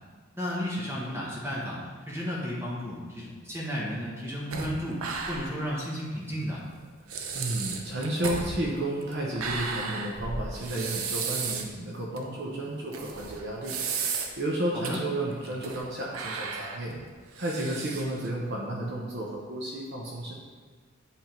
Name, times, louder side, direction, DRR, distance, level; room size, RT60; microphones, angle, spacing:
voice 1, 0.3-1.8 2.1-5.0 5.3-6.6 14.7-15.0, equal, 10° right, -6 dB, 1.1 m, -33 dB
Mouth Rise, 4.5-5.7 6.0-6.1 6.7-6.8 7.1-11.7 12.2-12.3 12.9-14.5 14.8-14.9 15.4-15.9 16.1-18.3, right 5 dB, 85° right, 0.7 m, -34 dB
voice 2, 7.3-13.8 14.4-16.9 17.4-20.3, right 1 dB, 55° right, -3 dB, 0.9 m, -32 dB
8.2 x 3.6 x 4.4 m, 1.5 s
head